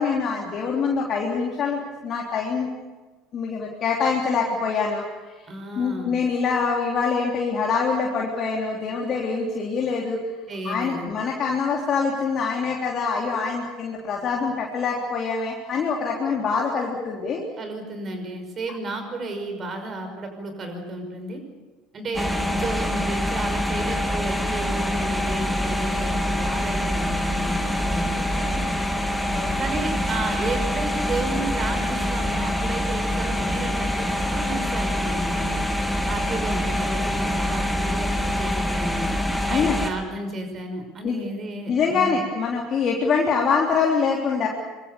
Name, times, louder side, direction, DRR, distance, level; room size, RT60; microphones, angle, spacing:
voice 1, 0.0-2.7 3.3-5.0 5.7-10.2 10.6-17.4 29.3-29.7 39.5-39.8 41.0-41.2 41.7-44.5, left 5 dB, 35° left, -2 dB, 3.5 m, -24 dB
voice 2, 5.5-6.2 10.5-11.1 17.6-21.4 21.9-28.6 29.6-35.7 36.0-39.1 39.5-42.2, right 2 dB, 30° right, 6 dB, 5.8 m, -32 dB
sound 1, 22.1-39.9, left 1 dB, ahead, 3.4 m, -25 dB
25.5 x 23.0 x 7.0 m, 1.3 s
figure-of-eight pair, 65°, 0 cm